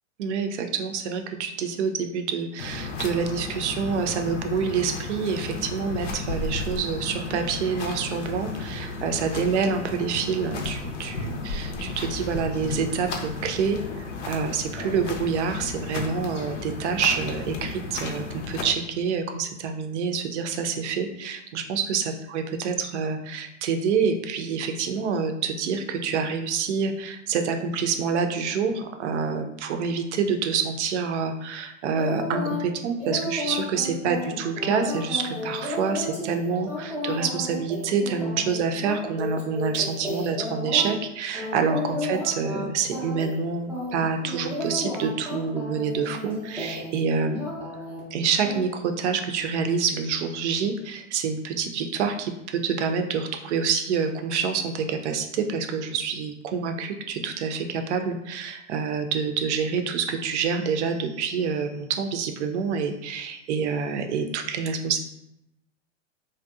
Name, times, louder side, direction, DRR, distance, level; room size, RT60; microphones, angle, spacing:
voice 1, 0.2-47.5 48.1-65.0, right 5 dB, 65° right, 6 dB, 0.5 m, -27 dB
sound 1, 2.6-18.6, left 3 dB, 70° left, 0.6 m, -33 dB
sound 2, 31.9-32.6 33.0-41.0 41.3-42.6 42.9-43.4 43.7-47.0 47.3-48.0 48.4-48.6, left 1 dB, 5° right, 0.4 m, -33 dB
2.6 x 2.1 x 2.3 m, 0.86 s
hypercardioid pair, 125°, 37 cm